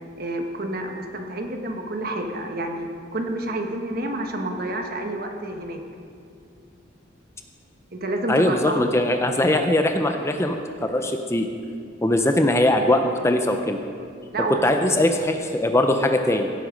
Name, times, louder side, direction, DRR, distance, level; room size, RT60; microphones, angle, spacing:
voice 1, 0.2-2.9 3.1-5.8 7.9-8.7 14.3-14.9, right 1 dB, 50° right, 3 dB, 1.2 m, -29 dB
voice 2, 8.3-11.5 12.0-13.8 14.5-16.5, left 1 dB, 15° left, 5 dB, 0.5 m, -21 dB
16.5 x 8.0 x 5.1 m, 2.4 s
head